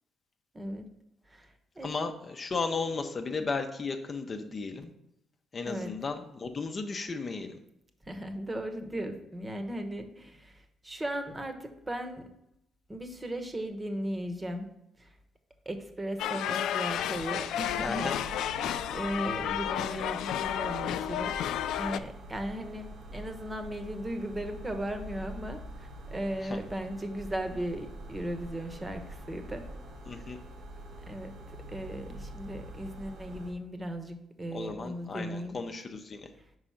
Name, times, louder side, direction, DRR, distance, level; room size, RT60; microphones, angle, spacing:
voice 1, 0.5-0.9 1.3-1.9 5.7-5.9 8.1-12.3 12.9-14.7 15.0-15.1 15.6-18.1 18.5-21.3 21.8-29.7 30.2-30.3 31.1-35.6, right 1 dB, 20° right, 7 dB, 1.0 m, -37 dB
voice 2, 1.8-4.9 5.5-7.6 17.8-18.2 26.4-26.6 30.1-30.4 34.5-36.2, left 4 dB, 40° left, 5 dB, 0.7 m, -35 dB
sound 1, 16.2-22.0, left 10 dB, 85° left, 0.3 m, -32 dB
sound 2, 17.6-33.5, right 1 dB, 75° right, 1.5 m, -45 dB
5.0 x 4.8 x 5.7 m, 0.81 s
cardioid pair, 90°, 0 cm